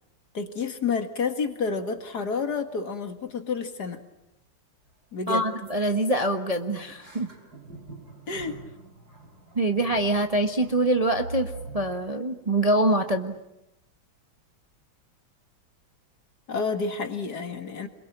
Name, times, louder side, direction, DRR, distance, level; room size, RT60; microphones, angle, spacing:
voice 1, 0.3-4.0 5.1-5.5 8.3-8.6 16.5-17.9, left 5 dB, 55° left, 7 dB, 2.3 m, -29 dB
sound 1, 4.9-5.0 5.2-5.3 5.6-5.8 6.0-11.9, right 2 dB, 50° right, 4.9 m, -44 dB
voice 2, 5.3-7.3 9.5-13.4, right 1 dB, 20° right, 5 dB, 1.1 m, -24 dB
26.5 x 22.5 x 8.9 m, 0.89 s
omnidirectional pair, 2.2 m